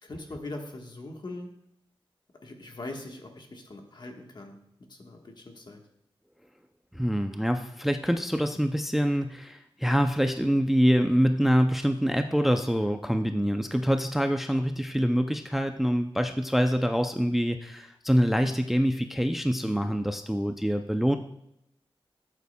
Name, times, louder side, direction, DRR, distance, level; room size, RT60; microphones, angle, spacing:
voice 1, 0.0-1.5 2.4-4.6 4.9-5.8, left 2 dB, 50° left, 2 dB, 1.2 m, -41 dB
voice 2, 6.9-21.2, equal, ahead, 6 dB, 0.4 m, -25 dB
12.0 x 8.2 x 2.2 m, 0.79 s
wide cardioid pair, 120°, 10 cm